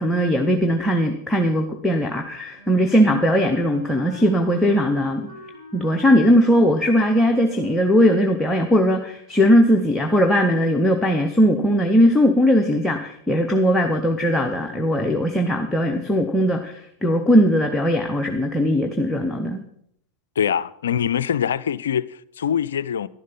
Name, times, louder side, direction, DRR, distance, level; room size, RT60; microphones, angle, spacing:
voice 1, 0.0-5.3 5.7-19.6, equal, 10° left, 0.9 m, -19 dB
Wind instrument woodwind instrument, 2.5-8.1, left 3 dB, 80° right, 5.8 m, -45 dB
voice 2, 20.4-23.1, left 8 dB, 65° left, 0.4 m, -23 dB
11.5 x 11.0 x 5.6 m
figure-of-eight pair, 90°, 0 cm